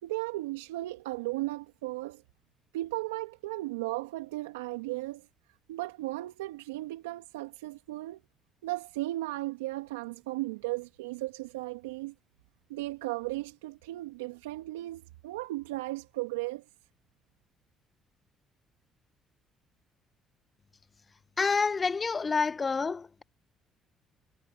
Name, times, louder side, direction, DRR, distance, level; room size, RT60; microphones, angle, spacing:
voice 1, 0.0-2.2 2.7-5.3 5.7-8.2 8.6-12.1 12.7-16.6, right 19 dB, 85° right, 2.0 m, -36 dB
voice 2, 21.4-23.2, left 4 dB, 35° left, 1.3 m, -28 dB
hypercardioid pair, 55°, 0 cm